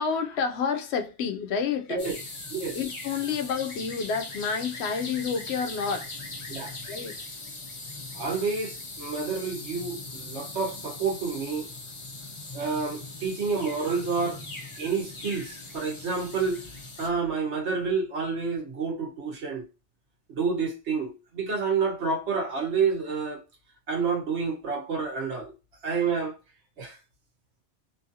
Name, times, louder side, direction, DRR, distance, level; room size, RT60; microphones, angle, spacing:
voice 1, 0.0-2.1 2.7-6.1 6.8-7.2, left 6 dB, 75° left, 0.8 m, -29 dB
sound 1, 2.0-17.1, left 2 dB, 30° left, 0.7 m, -40 dB
voice 2, 8.1-11.7 12.5-14.4 14.8-16.6 17.0-19.6 20.3-23.4 23.9-25.5 25.8-26.4 26.8-27.0, right 5 dB, 80° right, 1.3 m, -29 dB
3.0 x 2.6 x 2.5 m
omnidirectional pair, 1.1 m